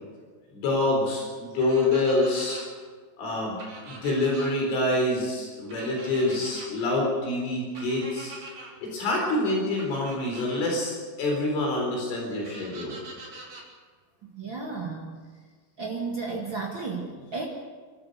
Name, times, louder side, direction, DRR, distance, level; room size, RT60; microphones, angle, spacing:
voice 1, 0.5-2.6 3.2-3.6 3.9-8.3 8.8-12.9, left 2 dB, 70° left, -1 dB, 6.4 m, -26 dB
sound 1, 1.6-2.6 3.6-4.5 5.7-6.7 7.7-8.7 9.8-10.6 12.4-13.6, right 3 dB, 45° right, 5.0 m, -43 dB
voice 2, 14.2-15.1 15.8-17.5, right 4 dB, 85° right, -1 dB, 1.0 m, -33 dB
29.0 x 13.5 x 6.6 m, 1.5 s
omnidirectional pair, 5.9 m